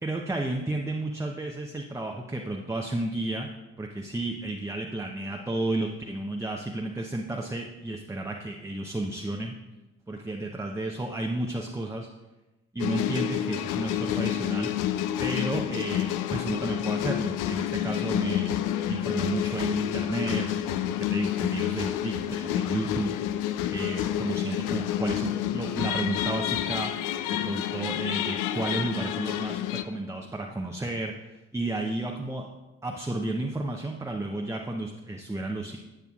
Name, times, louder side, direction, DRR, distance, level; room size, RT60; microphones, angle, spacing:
voice 1, 0.0-3.5 3.8-9.5 10.1-12.1 12.7-14.7 15.2-23.1 23.7-26.9 27.3-32.5 32.8-35.8, right 2 dB, 10° right, 1 dB, 0.7 m, -32 dB
sound 1, 12.8-29.8, left 11 dB, 60° left, 0.5 m, -29 dB
11.0 x 8.2 x 2.4 m, 1.0 s
figure-of-eight pair, 45°, 36 cm